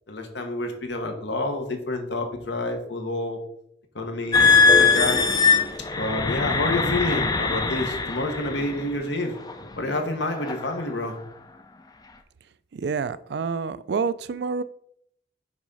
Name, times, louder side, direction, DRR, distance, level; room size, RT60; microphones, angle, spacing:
voice 1, 0.1-3.4 3.9-5.3 5.9-9.4 9.8-11.2, left 2 dB, 70° left, 4 dB, 1.2 m, -28 dB
sound 1, 4.3-8.8 9.5-9.7 10.3-10.7, left 5 dB, 20° left, 0.4 m, -21 dB
voice 2, 12.7-14.6, right 5 dB, 65° right, 16 dB, 0.3 m, -28 dB
6.2 x 3.6 x 5.4 m, 0.70 s
head